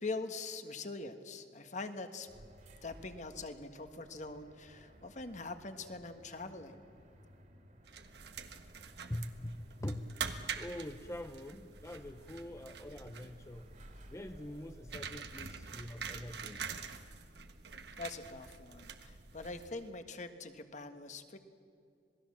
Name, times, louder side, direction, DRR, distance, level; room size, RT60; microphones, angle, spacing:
voice 1, 0.0-2.3 2.8-6.8 18.0-21.4, left 3 dB, 45° left, 8 dB, 1.6 m, -43 dB
sound 1, 2.2-17.4, right 1 dB, 45° right, 2.9 m, -59 dB
sound 2, 7.9-19.9, right 6 dB, 70° right, 1.5 m, -46 dB
voice 2, 9.1-10.1 10.6-13.7 14.1-16.7, left 1 dB, 15° left, 7 dB, 0.7 m, -44 dB
27.0 x 19.5 x 7.5 m, 2.4 s
head